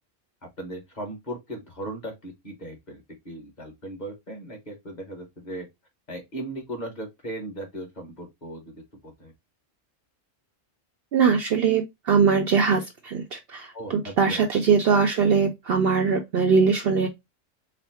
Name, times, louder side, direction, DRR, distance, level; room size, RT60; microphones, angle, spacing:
voice 1, 0.6-5.7 6.1-9.3 13.7-14.4, right 1 dB, 35° left, 1.5 m, -37 dB
voice 2, 11.1-17.1, right 5 dB, 60° right, 0.7 m, -21 dB
4.1 x 2.0 x 4.2 m
omnidirectional pair, 1.3 m